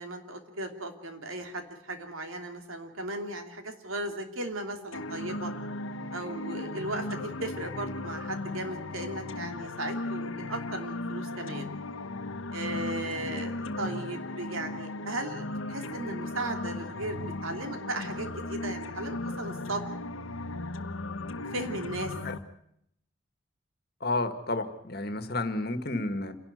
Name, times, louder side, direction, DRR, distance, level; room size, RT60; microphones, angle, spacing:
voice 1, 0.0-5.5 6.1-11.7 12.5-19.8 21.5-22.1, right 2 dB, 80° right, 5 dB, 2.9 m, -36 dB
sound 1, 4.9-22.4, left 2 dB, 80° left, 1.3 m, -36 dB
voice 2, 24.0-26.4, left 2 dB, 50° left, 9 dB, 1.8 m, -31 dB
28.0 x 11.5 x 9.4 m, 0.74 s
head